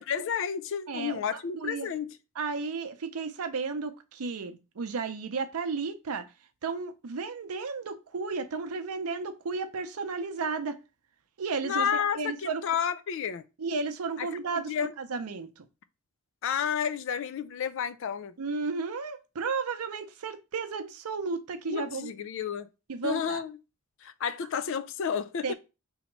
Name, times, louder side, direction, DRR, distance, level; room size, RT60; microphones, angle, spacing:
voice 1, 0.0-2.1 11.6-13.4 14.2-14.3 14.5-14.9 16.4-18.3 21.7-22.7 23.0-23.5 24.0-25.5, left 7 dB, 60° left, 0.4 m, -31 dB
voice 2, 0.9-1.9 2.4-6.3 6.6-10.8 11.4-11.9 12.1-12.6 13.6-15.6 18.4-22.1 22.9-23.4 25.4-25.5, right 4 dB, 85° right, 0.6 m, -33 dB
2.9 x 2.7 x 4.4 m
head